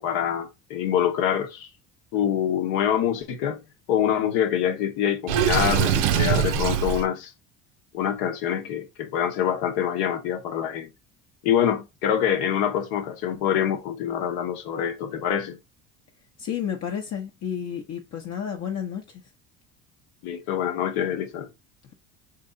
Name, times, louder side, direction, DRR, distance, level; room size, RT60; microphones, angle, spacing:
voice 1, 0.0-1.7 2.1-3.6 3.9-7.3 7.9-10.9 11.4-15.6 20.2-21.5, left 9 dB, 80° left, 0.9 m, -25 dB
Water / Sink (filling or washing), 5.3-7.0, right 9 dB, 80° right, 0.6 m, -22 dB
voice 2, 16.4-19.2, left 8 dB, 45° left, 0.7 m, -31 dB
3.0 x 2.7 x 3.7 m
supercardioid pair, 95°, 35 cm